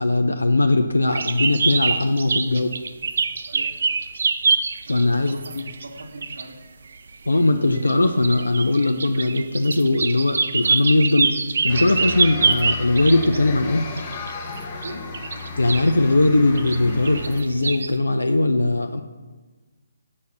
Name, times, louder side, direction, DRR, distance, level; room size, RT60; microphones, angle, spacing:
voice 1, 0.0-2.7 4.9-5.6 7.3-11.3 11.6-13.9 15.6-19.0, left 2 dB, 85° left, 6 dB, 0.5 m, -20 dB
sound 1, 1.1-6.4 6.9-7.3 7.7-13.4 14.0-15.9 16.6-17.9, right 4 dB, 60° right, 0.5 m, -25 dB
voice 2, 4.9-6.6 14.8-15.1, right 1 dB, 80° right, -3 dB, 1.1 m, -40 dB
sound 2, 11.7-17.4, left 3 dB, 35° left, 1.0 m, -34 dB
6.9 x 5.4 x 6.4 m, 1.3 s
figure-of-eight pair, 140°, 0 cm